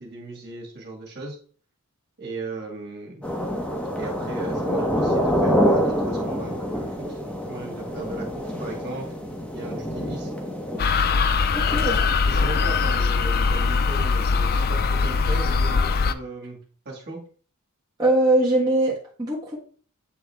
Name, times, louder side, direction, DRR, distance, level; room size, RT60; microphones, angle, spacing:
voice 1, 0.0-1.4 2.2-3.3 4.0-7.2 7.5-9.1 9.4-10.3 11.7-16.6 16.9-17.2, right 2 dB, 50° right, 0 dB, 2.1 m, -37 dB
sound 1, 3.2-10.8, equal, 5° left, 0.9 m, -26 dB
sound 2, 10.8-16.1, left 4 dB, 45° left, 0.4 m, -21 dB
voice 2, 11.5-12.0 18.0-19.6, right 1 dB, 15° right, -6 dB, 1.4 m, -21 dB
8.3 x 3.9 x 3.5 m, 0.43 s
head